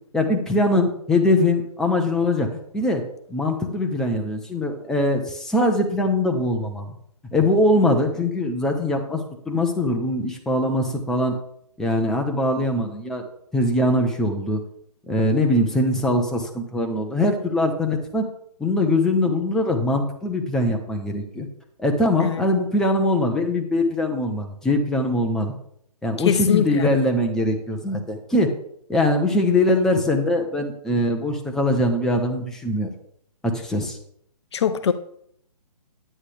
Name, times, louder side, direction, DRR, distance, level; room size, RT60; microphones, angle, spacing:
voice 1, 0.1-3.0 3.3-6.9 7.3-11.4 11.8-13.2 13.5-14.6 15.1-18.2 18.6-21.5 21.8-25.5 26.0-28.5 28.9-32.9 33.4-34.0, left 1 dB, ahead, 0.7 m, -22 dB
voice 2, 26.2-26.9 34.5-34.9, left 8 dB, 45° left, 0.6 m, -22 dB
9.8 x 9.7 x 3.4 m
hypercardioid pair, 145°, 20 cm